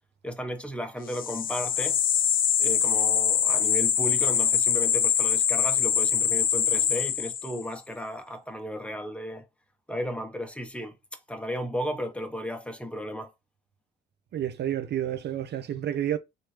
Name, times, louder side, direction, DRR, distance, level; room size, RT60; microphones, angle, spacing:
voice 1, 0.2-2.0 2.6-9.4 9.9-10.9 11.3-13.3, equal, 5° left, 0.8 m, -34 dB
sound 1, 1.1-7.6, left 8 dB, 45° left, 0.5 m, -24 dB
voice 2, 14.3-16.2, right 11 dB, 60° right, 0.6 m, -30 dB
3.3 x 2.6 x 3.2 m
cardioid pair, 90°, 20 cm